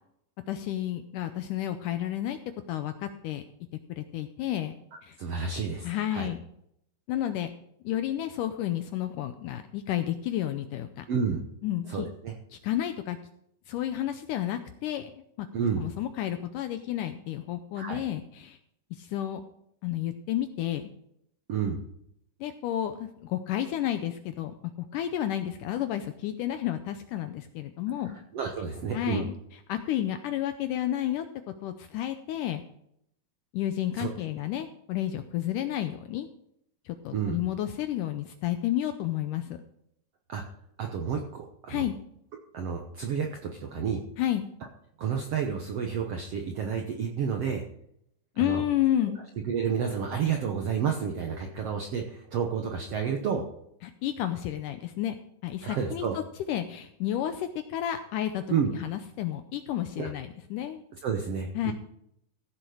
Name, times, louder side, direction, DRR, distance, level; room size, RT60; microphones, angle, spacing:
voice 1, 0.5-2.4 2.7-3.4 3.9-4.7 5.0-5.2 5.8-6.4 7.1-7.5 7.8-11.1 11.6-12.1 12.5-13.2 13.7-15.5 15.8-18.6 18.9-19.4 19.8-20.8 22.4-28.2 28.9-29.3 29.7-31.2 31.6-32.6 33.5-36.3 36.9-39.6 41.7-41.9 44.2-44.5 48.4-49.2 53.8-55.2 55.4-56.2 56.5-58.4 58.8-60.8 61.6-61.7, left 12 dB, 80° left, 9 dB, 1.9 m, -31 dB
voice 2, 5.2-6.3 11.1-11.4 11.8-12.3 15.5-15.8 17.7-18.0 21.5-21.8 28.3-29.3 34.0-34.1 37.1-37.4 40.3-40.4 40.8-41.9 42.5-44.0 45.0-47.6 48.3-48.6 49.4-53.5 55.6-56.2 58.5-58.7 60.0-60.1 61.0-61.7, right 6 dB, 75° right, 3 dB, 1.4 m, -30 dB
15.5 x 7.2 x 5.0 m, 0.73 s
omnidirectional pair, 4.3 m